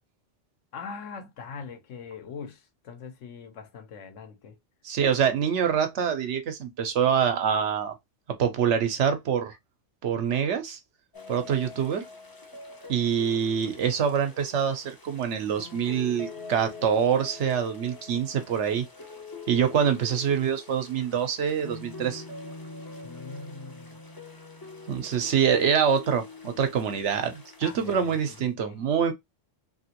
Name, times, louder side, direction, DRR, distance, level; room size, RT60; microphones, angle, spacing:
voice 1, 0.7-4.6 23.0-24.0 27.6-28.8, left 5 dB, 75° left, 1.1 m, -42 dB
voice 2, 4.8-7.9 8.4-9.6 10.0-10.8 11.3-12.0 12.9-18.8 19.5-22.2 24.9-29.1, right 7 dB, 70° right, 1.0 m, -25 dB
sound 1, 11.1-28.4, left 3 dB, 25° left, 0.5 m, -44 dB
2.9 x 2.7 x 2.8 m
omnidirectional pair, 1.3 m